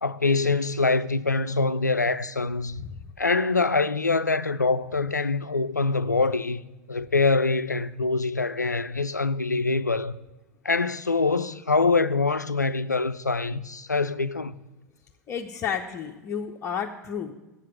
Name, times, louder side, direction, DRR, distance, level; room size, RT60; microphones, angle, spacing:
voice 1, 0.0-2.8 3.2-6.6 6.9-10.2 10.6-14.6, left 3 dB, 90° left, 0.4 m, -24 dB
voice 2, 15.3-17.3, left 7 dB, 30° left, 0.7 m, -32 dB
8.0 x 7.5 x 8.6 m
figure-of-eight pair, 90°, 9 cm